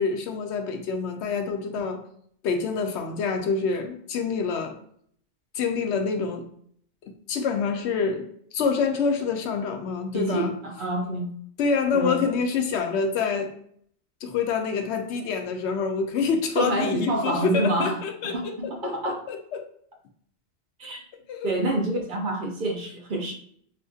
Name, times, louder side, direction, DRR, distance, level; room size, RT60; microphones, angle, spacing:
voice 1, 0.0-2.1 2.4-4.8 5.5-6.5 7.0-8.2 8.5-10.6 11.6-13.5 14.2-19.7 21.3-21.5, left 5 dB, 80° left, 0.9 m, -27 dB
voice 2, 10.1-11.3 11.9-12.2 16.6-18.0 18.2-19.2 20.8-21.0 21.4-23.3, right 1 dB, 55° right, 0.7 m, -27 dB
4.2 x 2.6 x 2.3 m
omnidirectional pair, 1.1 m